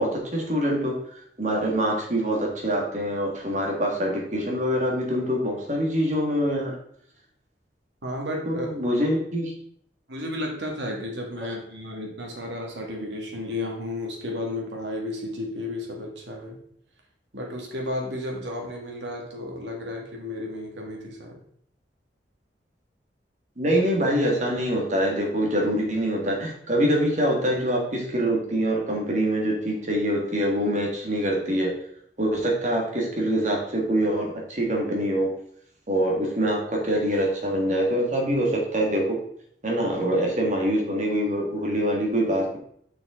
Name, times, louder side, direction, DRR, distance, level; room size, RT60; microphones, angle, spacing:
voice 1, 0.0-6.7 8.5-9.5 23.6-31.7 32.2-35.3 35.9-39.2 39.6-42.6, equal, 45° right, -1 dB, 1.9 m, -24 dB
voice 2, 8.0-8.7 10.1-16.6 17.3-21.4, left 1 dB, 85° right, 0 dB, 2.0 m, -33 dB
6.5 x 6.0 x 3.7 m, 0.67 s
head